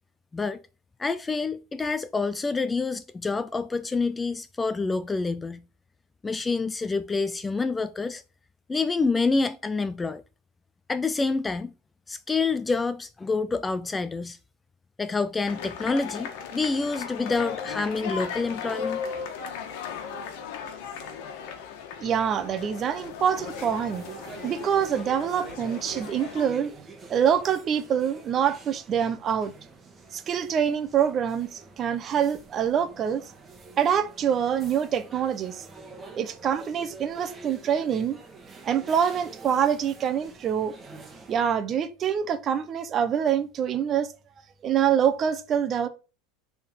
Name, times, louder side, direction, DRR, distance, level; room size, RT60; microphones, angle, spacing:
voice 1, 1.0-5.6 6.2-8.2 8.7-10.2 10.9-11.7 12.1-14.4 15.0-19.0, left 4 dB, 15° left, 0.3 m, -27 dB
sound 1, 15.5-26.5, left 7 dB, 70° left, 1.5 m, -37 dB
voice 2, 22.0-24.0 24.4-26.7 27.1-29.5 30.1-33.2 33.8-35.6 36.1-38.2 38.6-40.7 41.3-44.1 44.6-45.9, right 8 dB, 35° right, 0.9 m, -25 dB
sound 2, 23.2-41.6, right 3 dB, 15° right, 1.5 m, -47 dB
6.7 x 3.8 x 6.1 m
supercardioid pair, 130°, 0 cm